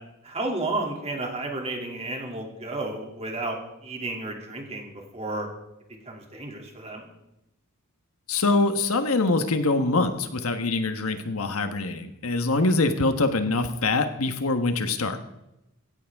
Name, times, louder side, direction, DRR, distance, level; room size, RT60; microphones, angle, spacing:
voice 1, 0.2-5.5 6.0-7.1, right 2 dB, 30° right, 1 dB, 2.7 m, -32 dB
voice 2, 8.3-15.2, left 3 dB, 70° left, 7 dB, 1.3 m, -24 dB
16.5 x 15.5 x 3.6 m, 0.88 s
head